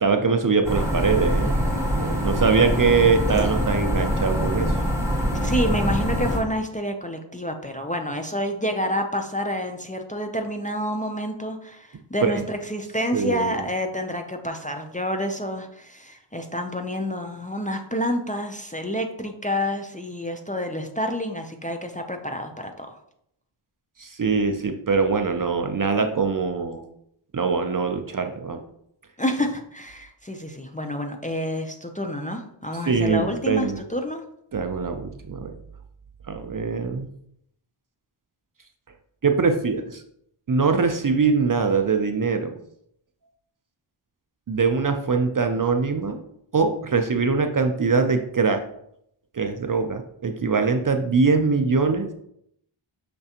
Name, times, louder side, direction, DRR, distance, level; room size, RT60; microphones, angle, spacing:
voice 1, 0.0-1.6 1.9-4.7 12.2-12.4 13.1-13.6 24.0-26.9 27.3-28.6 32.9-33.8 34.5-35.5 36.3-37.1 39.2-40.0 40.5-42.5 44.5-46.2 46.5-48.6 49.3-52.1, right 4 dB, 45° right, 6 dB, 0.4 m, -22 dB
sound 1, 0.6-6.4, equal, 5° right, 1.6 m, -24 dB
voice 2, 5.3-22.9 29.2-34.2, equal, 15° left, 4 dB, 0.4 m, -28 dB
5.9 x 3.2 x 2.8 m, 0.72 s
wide cardioid pair, 50°, 50 cm